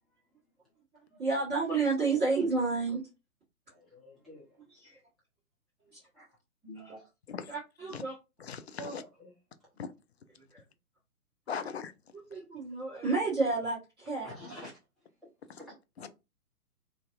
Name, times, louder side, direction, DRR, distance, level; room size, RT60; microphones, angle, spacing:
voice 1, 1.2-3.0 4.8-4.9 6.9-7.0 7.5-8.1 12.1-14.3, right 4 dB, 20° right, 1.6 m, -30 dB
voice 2, 3.7-4.6 6.1-6.2 6.6-7.1 8.8-9.3 14.2-14.8 15.6-16.1, equal, ahead, 0.8 m, -48 dB
voice 3, 8.4-9.0 9.8-9.9 11.5-11.9 16.0-16.1, left 6 dB, 50° left, 0.4 m, -38 dB
3.3 x 2.5 x 2.4 m
figure-of-eight pair, 130°, 44 cm